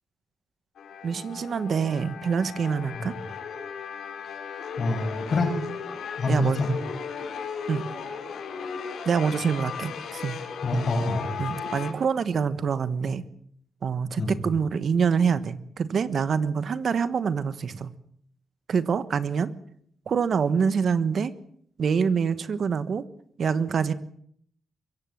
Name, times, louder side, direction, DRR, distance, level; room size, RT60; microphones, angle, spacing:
sound 1, 0.8-11.9, left 6 dB, 85° left, 4.5 m, -36 dB
voice 1, 1.0-3.1 6.3-6.6 7.7-7.9 9.0-10.4 11.4-13.2 13.8-17.9 18.7-19.5 20.1-21.3 21.8-23.0 23.4-23.9, right 6 dB, 60° right, 14 dB, 1.3 m, -25 dB
voice 2, 4.8-5.6 6.2-6.7 10.6-11.3 14.2-14.3, left 2 dB, 50° left, 3 dB, 7.8 m, -25 dB
23.0 x 17.0 x 7.5 m, 0.64 s
cardioid pair, 115°, 0 cm